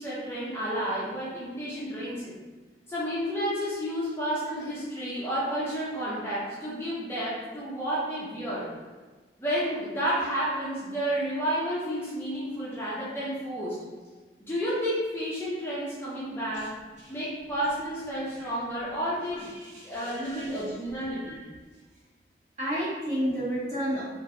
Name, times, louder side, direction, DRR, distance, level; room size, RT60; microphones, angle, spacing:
voice 1, 0.0-2.2 2.9-8.7 9.4-13.8 14.4-16.8 17.1-19.5 19.8-21.4, equal, 15° left, -9 dB, 0.5 m, -31 dB
voice 2, 19.0-20.6 21.2-21.4 22.6-24.0, equal, 45° right, -11 dB, 1.4 m, -32 dB
2.9 x 2.5 x 2.6 m, 1.4 s
head